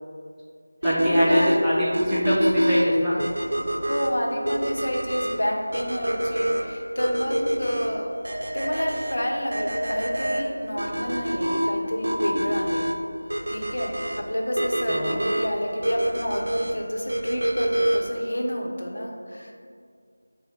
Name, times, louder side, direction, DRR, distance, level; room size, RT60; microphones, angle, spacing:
voice 1, 0.8-3.1 14.9-15.2, equal, ahead, -15 dB, 0.4 m, -24 dB
sound 1, 0.8-18.2, equal, 85° right, 0.6 m, -26 dB
voice 2, 3.9-8.2 8.5-12.9 13.5-19.5, equal, 85° left, 1 dB, 0.7 m, -29 dB
5.0 x 2.1 x 4.4 m, 2.2 s
figure-of-eight pair, 175°, 0 cm